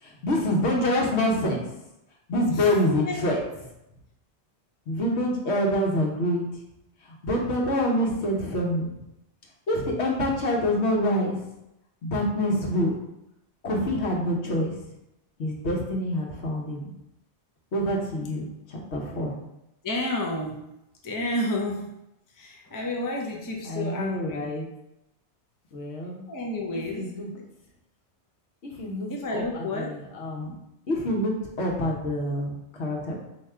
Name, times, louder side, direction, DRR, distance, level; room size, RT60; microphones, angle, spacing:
voice 1, 0.0-1.6 2.3-3.4 4.9-6.5 7.0-9.0 9.7-11.4 12.0-13.0 13.6-14.8 15.4-16.9 17.7-19.4 23.6-24.7 25.7-26.2 26.7-27.3 28.6-30.5 30.9-33.1, left 1 dB, 70° left, -1 dB, 1.2 m, -26 dB
voice 2, 2.5-3.4 19.8-20.6 21.0-21.9 22.3-24.5 26.3-27.5 29.1-30.0, left 1 dB, 25° left, 0 dB, 0.4 m, -31 dB
3.6 x 2.8 x 4.4 m, 0.88 s
omnidirectional pair, 1.2 m